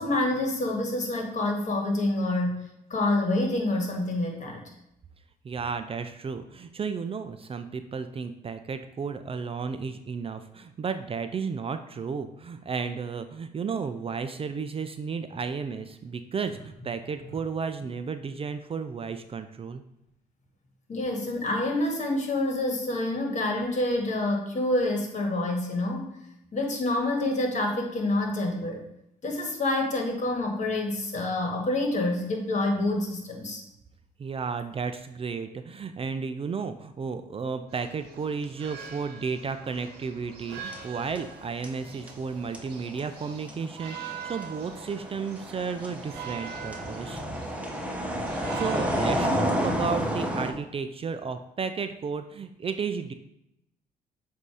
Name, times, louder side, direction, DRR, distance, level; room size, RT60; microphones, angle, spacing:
voice 1, 0.0-2.6 2.9-4.6 20.9-26.1 26.5-28.8 29.2-33.6, left 2 dB, 45° left, 1 dB, 1.8 m, -27 dB
voice 2, 5.4-19.8 34.2-47.2 48.3-53.1, right 5 dB, 35° right, 9 dB, 0.5 m, -33 dB
sound 1, 37.7-49.4, right 7 dB, 80° right, 1.0 m, -44 dB
sound 2, 40.5-41.4 41.6-50.5, equal, 10° right, 1.0 m, -31 dB
7.6 x 2.8 x 4.8 m, 0.83 s
cardioid pair, 75°, 17 cm